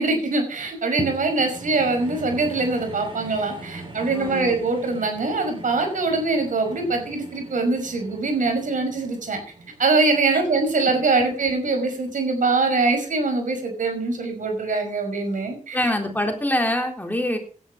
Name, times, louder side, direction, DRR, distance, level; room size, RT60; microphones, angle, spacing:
voice 1, 0.0-9.4 9.8-15.9, right 3 dB, 85° right, 5 dB, 5.4 m, -23 dB
sound 1, 1.0-11.5 12.1-12.2, right 2 dB, 40° right, 5.2 m, -40 dB
voice 2, 4.1-4.5 15.7-17.4, left 1 dB, 15° left, 3 dB, 3.8 m, -24 dB
17.5 x 11.0 x 4.8 m, 0.41 s
wide cardioid pair, 85°, 13 cm